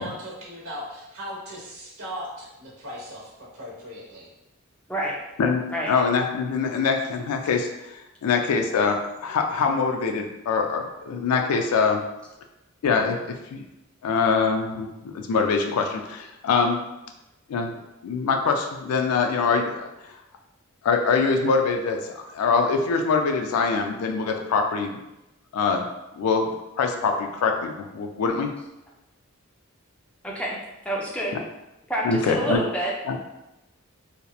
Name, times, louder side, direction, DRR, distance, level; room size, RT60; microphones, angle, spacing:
voice 1, 0.0-4.3, equal, 70° right, -5 dB, 0.9 m, -38 dB
voice 2, 5.4-12.0 12.8-13.7 14.0-16.8 17.5-17.8 18.0-19.9 20.8-25.0 25.5-25.9 26.1-26.5 26.8-28.5 32.0-32.6 33.1-33.2, left 5 dB, 90° left, 4 dB, 0.3 m, -24 dB
voice 3, 30.2-30.6 30.8-31.4 31.9-33.2, right 1 dB, 5° left, -4 dB, 0.3 m, -28 dB
2.8 x 2.0 x 2.2 m, 0.94 s
head